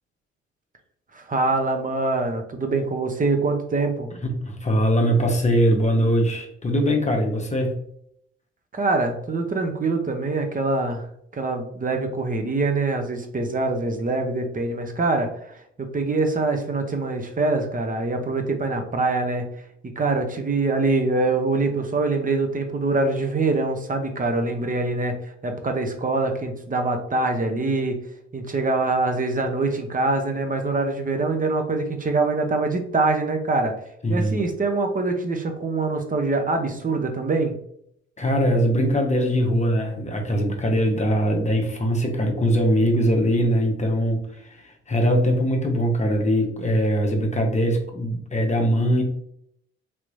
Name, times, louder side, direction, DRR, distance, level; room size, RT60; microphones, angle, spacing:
voice 1, 1.1-4.1 8.7-11.0 11.3-15.3 15.8-19.4 20.0-28.0 28.3-33.7 34.1-37.5, right 3 dB, 25° right, 5 dB, 0.8 m, -24 dB
voice 2, 4.3-7.8 34.0-34.4 38.2-49.0, equal, 20° left, 2 dB, 0.9 m, -21 dB
3.5 x 2.9 x 2.6 m, 0.71 s
hypercardioid pair, 45°, 33 cm